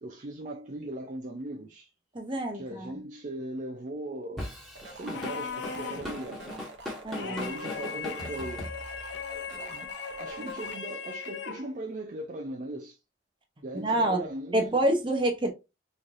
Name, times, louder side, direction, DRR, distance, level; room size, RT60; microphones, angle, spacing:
voice 1, 0.0-1.9 2.5-4.5 4.8-6.7 7.2-8.7 9.5-13.0 13.6-14.8, right 1 dB, 40° right, 0.4 m, -39 dB
voice 2, 2.1-3.0 7.0-7.5 13.7-14.2 14.5-15.5, right 1 dB, 25° right, 0.8 m, -27 dB
Drum kit / Drum, 4.4-9.2, left 1 dB, ahead, 1.2 m, -39 dB
sound 1, 4.7-10.8, right 3 dB, 65° right, 1.0 m, -46 dB
sound 2, 5.1-6.2 7.1-11.7, left 6 dB, 70° left, 0.6 m, -38 dB
3.9 x 3.2 x 2.5 m
head